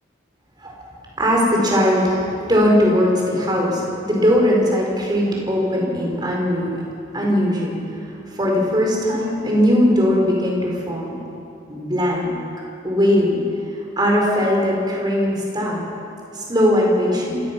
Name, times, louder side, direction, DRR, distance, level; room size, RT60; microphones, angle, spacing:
voice 1, 1.2-6.8 7.1-11.2 11.7-12.4 12.8-13.4 14.0-15.8 16.3-17.4, equal, 20° right, -2 dB, 4.6 m, -19 dB
27.0 x 16.5 x 6.1 m, 2.6 s
head